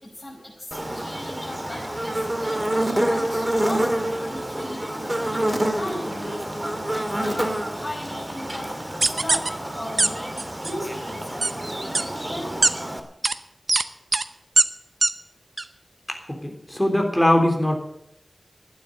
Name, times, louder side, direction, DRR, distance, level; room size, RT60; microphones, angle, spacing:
voice 1, 0.0-12.7, left 1 dB, 25° left, -3 dB, 5.1 m, -37 dB
Buzz, 0.7-13.0, right 1 dB, 20° right, 2.0 m, -28 dB
Squeaker Toy, 9.0-9.5 10.0-10.1 10.4-10.7 11.4-11.5 11.9-12.0 12.6-12.7 13.2-13.3 13.7-13.8 14.1-14.2 14.6-14.7 15.0-15.1 15.6-15.7, right 3 dB, 60° right, 0.7 m, -19 dB
voice 2, 16.4-17.8, left 1 dB, 10° left, 2 dB, 3.5 m, -21 dB
12.0 x 9.4 x 8.7 m, 0.77 s
wide cardioid pair, 65°, 0 cm